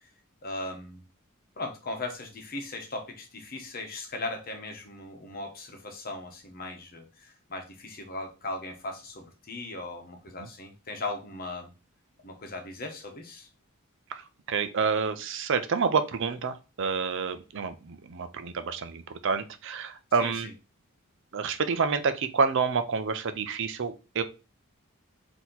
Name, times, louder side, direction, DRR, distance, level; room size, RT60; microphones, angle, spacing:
voice 1, 0.4-1.0 1.6-11.7 12.2-13.5 20.2-20.3, left 2 dB, 45° left, 3 dB, 1.1 m, -38 dB
voice 2, 14.5-20.5 21.3-24.2, right 5 dB, 60° right, 10 dB, 0.5 m, -28 dB
4.2 x 2.9 x 3.9 m, 0.30 s
head